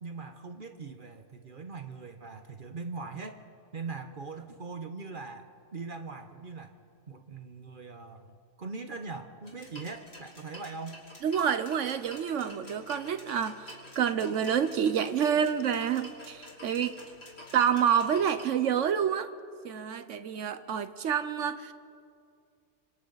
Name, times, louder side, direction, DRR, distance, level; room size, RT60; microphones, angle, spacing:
voice 1, 0.0-3.4 3.7-6.7 7.1-11.0, right 4 dB, 40° right, 7 dB, 1.0 m, -41 dB
sound 1, 9.4-18.4, left 1 dB, 45° left, 3.4 m, -49 dB
voice 2, 11.2-17.0 17.5-19.3 19.6-21.7, right 8 dB, 65° right, 12 dB, 1.0 m, -28 dB
26.5 x 25.0 x 4.0 m, 2.3 s
omnidirectional pair, 1.5 m